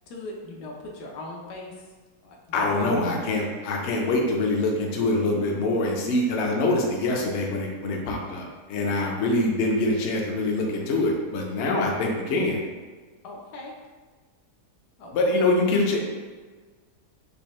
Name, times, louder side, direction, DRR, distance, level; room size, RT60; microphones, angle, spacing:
voice 1, 0.1-1.7 2.2-3.2 13.2-13.7 15.0-15.4, left 2 dB, 80° left, -1 dB, 1.3 m, -39 dB
voice 2, 2.5-12.6 15.1-16.0, left 2 dB, 65° left, 0 dB, 0.7 m, -24 dB
5.2 x 2.1 x 3.0 m, 1.4 s
omnidirectional pair, 1.8 m